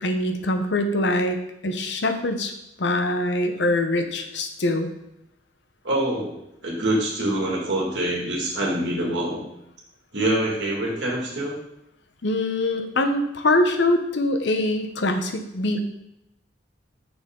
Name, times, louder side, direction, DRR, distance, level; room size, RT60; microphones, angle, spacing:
voice 1, 0.0-1.4 1.6-2.5 2.8-4.9 12.2-15.8, left 1 dB, 65° left, 6 dB, 0.7 m, -23 dB
voice 2, 5.8-6.3 6.6-9.4 10.1-11.6, right 1 dB, 70° right, -3 dB, 2.0 m, -25 dB
6.2 x 5.5 x 3.7 m, 0.82 s
head